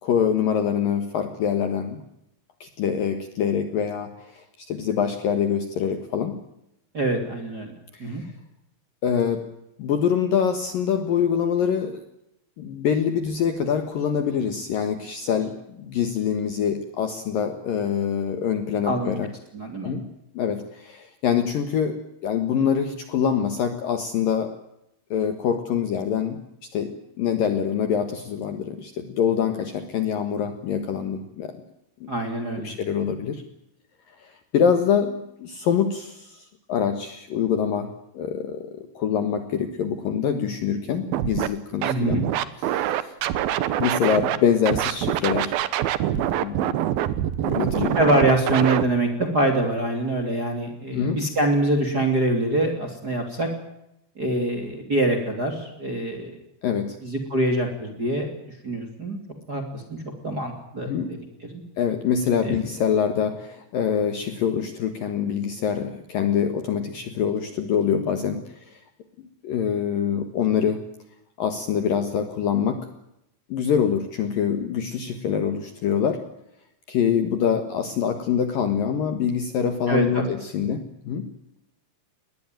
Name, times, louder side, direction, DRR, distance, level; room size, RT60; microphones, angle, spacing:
voice 1, 0.0-2.0 2.6-6.4 7.9-8.3 9.0-9.5 9.8-12.0 12.6-19.3 19.8-20.1 20.3-22.0 22.2-24.6 25.1-31.6 32.0-32.1 32.5-33.4 34.1-42.2 42.6-43.1 43.8-45.5 46.1-46.9 47.4-48.0 50.9-51.2 56.6-57.0 60.9-61.1 61.8-68.8 69.4-70.8 71.4-72.9 73.5-76.2 76.9-81.3, left 8 dB, 65° left, 9 dB, 2.5 m, -25 dB
voice 2, 6.9-7.7 8.0-8.2 18.9-19.1 19.5-20.0 32.1-32.7 41.8-42.2 48.0-53.5 54.2-56.4 57.0-58.3 58.6-59.2 59.5-60.0 60.2-61.2 61.5-61.6 62.4-62.6 79.9-80.5, right 1 dB, 25° right, 4 dB, 2.4 m, -24 dB
Scratching (performance technique), 41.1-41.5 41.8-44.4 44.7-48.8, right 12 dB, 70° right, 2.3 m, -24 dB
21.5 x 19.5 x 9.2 m, 0.83 s
omnidirectional pair, 5.6 m